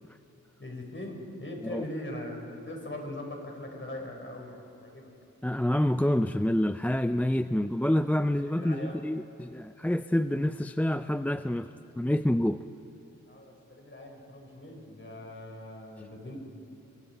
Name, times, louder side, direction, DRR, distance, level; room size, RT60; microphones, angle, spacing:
voice 1, 0.6-2.4 2.7-5.1 7.5-7.9 8.4-9.0 13.3-16.4, left 1 dB, 40° left, 1 dB, 5.0 m, -41 dB
voice 2, 5.4-11.7 12.0-12.6, left 1 dB, 5° left, 11 dB, 0.4 m, -27 dB
25.0 x 24.5 x 4.6 m, 2.8 s
wide cardioid pair, 70°, 30 cm